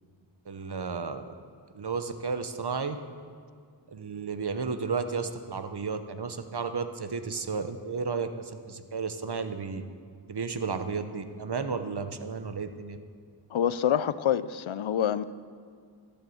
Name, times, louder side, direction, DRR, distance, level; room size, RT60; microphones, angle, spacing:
voice 1, 0.5-1.3 1.7-3.0 3.9-9.8 10.3-13.0, right 5 dB, 55° right, 9 dB, 0.9 m, -33 dB
voice 2, 13.5-15.2, left 9 dB, 90° left, 16 dB, 0.5 m, -26 dB
12.0 x 10.0 x 7.8 m, 2.1 s
wide cardioid pair, 60°, 46 cm